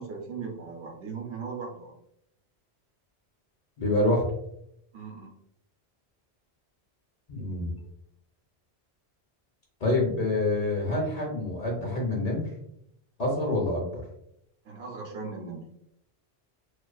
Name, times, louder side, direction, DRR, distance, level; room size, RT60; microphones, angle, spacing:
voice 1, 0.0-1.9 4.9-5.3 14.6-15.7, right 5 dB, 75° right, 0 dB, 1.0 m, -38 dB
voice 2, 3.8-4.3 7.3-7.7 9.8-12.5 13.2-14.0, left 2 dB, 50° left, -1 dB, 0.6 m, -27 dB
2.4 x 2.3 x 2.2 m, 0.77 s
omnidirectional pair, 1.1 m